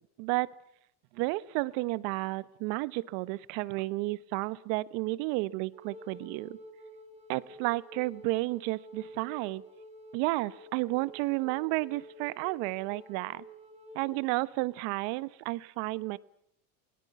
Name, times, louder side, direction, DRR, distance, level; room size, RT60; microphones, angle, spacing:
voice 1, 0.2-0.5 1.1-6.6 7.3-9.6 10.1-13.4 13.9-16.2, right 21 dB, 70° right, 18 dB, 1.1 m, -32 dB
Wind instrument woodwind instrument, 5.7-14.2, equal, 15° right, 3.0 m, -50 dB
23.0 x 18.0 x 9.6 m, 0.73 s
supercardioid pair, 105°, 43 cm